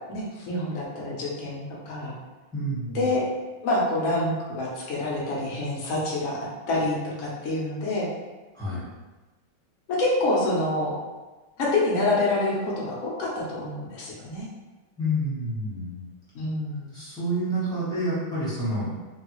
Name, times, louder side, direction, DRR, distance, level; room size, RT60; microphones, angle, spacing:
voice 1, 0.0-2.1 2.9-3.2 3.6-8.1 9.9-10.9 11.6-14.5 16.3-16.9, left 2 dB, 65° left, -4 dB, 0.8 m, -27 dB
voice 2, 2.5-3.1 8.5-8.9 15.0-16.1 16.9-19.0, equal, 5° left, -10 dB, 0.6 m, -28 dB
3.4 x 2.3 x 3.0 m, 1.2 s
omnidirectional pair, 2.3 m